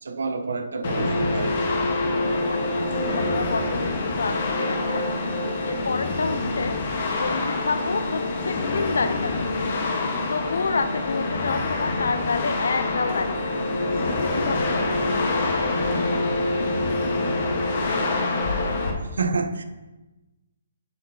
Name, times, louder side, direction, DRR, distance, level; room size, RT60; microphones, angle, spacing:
voice 1, 0.0-1.8 19.1-19.6, right 4 dB, 85° right, 0.9 m, -28 dB
sound 1, 0.8-18.9, left 2 dB, 45° left, 1.3 m, -25 dB
voice 2, 2.5-5.0 5.6-6.8 7.1-9.5 10.3-13.4 14.2-15.1, left 4 dB, 80° left, 0.7 m, -29 dB
8.0 x 7.2 x 2.8 m
hypercardioid pair, 165°, 0 cm